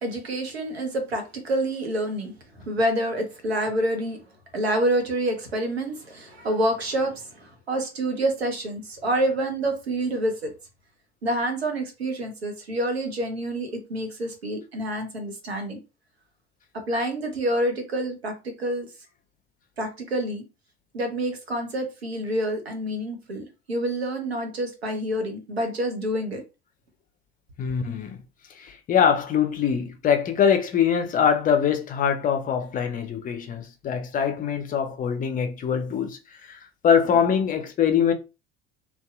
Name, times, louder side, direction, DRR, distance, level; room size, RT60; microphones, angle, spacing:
voice 1, 0.0-4.2 4.5-10.5 11.2-15.8 16.7-18.9 19.8-20.4 20.9-26.4, right 1 dB, 80° right, 0.8 m, -27 dB
voice 2, 27.6-28.2 28.6-38.1, left 7 dB, 25° left, 0.5 m, -23 dB
2.6 x 2.3 x 2.3 m
figure-of-eight pair, 65°, 31 cm